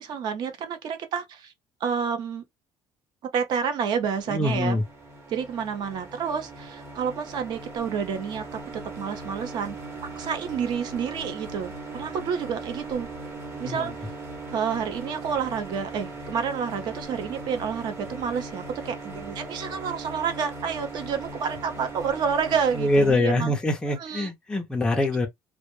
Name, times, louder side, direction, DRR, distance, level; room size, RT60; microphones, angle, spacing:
voice 1, 0.0-1.5 1.8-2.4 3.3-4.8 5.3-8.6 9.0-9.8 10.2-13.1 13.6-13.9 14.5-23.5 24.0-24.3, right 7 dB, 45° right, 0.6 m, -29 dB
sound 1, 3.9-23.1, right 3 dB, 25° right, 0.9 m, -39 dB
voice 2, 4.3-4.8 13.5-13.9 22.7-25.3, left 1 dB, 10° left, 0.4 m, -24 dB
2.1 x 2.0 x 3.0 m
cardioid pair, 175°, 10 cm